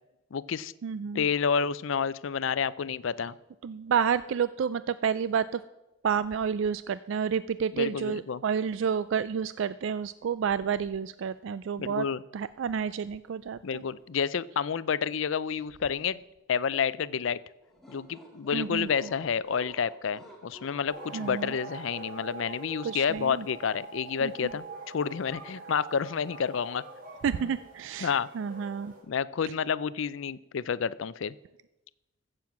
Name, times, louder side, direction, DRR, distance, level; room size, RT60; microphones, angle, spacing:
voice 1, 0.3-0.7 1.1-3.3 7.7-8.4 11.8-12.2 13.6-16.2 16.5-17.4 17.9-26.8 28.0-28.3 29.1-31.3, left 6 dB, 70° left, 18 dB, 0.4 m, -29 dB
voice 2, 0.8-1.3 3.6-5.6 6.0-12.1 12.3-13.8 18.5-18.9 21.1-21.5 22.8-23.5 24.2-24.3 27.2-28.9, right 7 dB, 70° right, 16 dB, 0.3 m, -30 dB
sound 1, 17.6-22.1, equal, ahead, 1.8 m, -50 dB
sound 2, 20.9-29.0, right 3 dB, 40° right, 4.2 m, -45 dB
14.5 x 7.7 x 5.9 m, 0.97 s
head